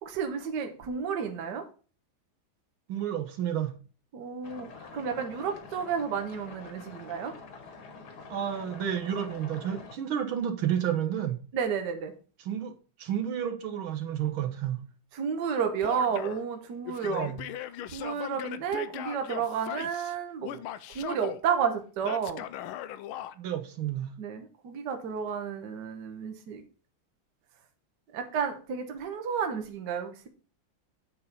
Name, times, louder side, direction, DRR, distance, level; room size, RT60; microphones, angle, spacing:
voice 1, 0.0-1.6 4.1-7.3 11.5-12.1 15.1-17.3 17.9-20.6 20.9-22.4 24.2-26.6 28.1-30.3, right 7 dB, 60° right, 1.5 m, -31 dB
voice 2, 2.9-3.7 8.3-11.4 12.4-12.7 13.0-14.8 17.0-17.4 23.4-24.1, right 9 dB, 75° right, 1.8 m, -31 dB
sound 1, 4.4-10.0, left 4 dB, 55° left, 1.7 m, -47 dB
Male speech man speaking / Yell, 15.8-16.4 16.9-20.1 20.4-21.4 22.0-23.3, left 12 dB, 90° left, 1.4 m, -38 dB
8.4 x 4.7 x 5.1 m
omnidirectional pair, 2.3 m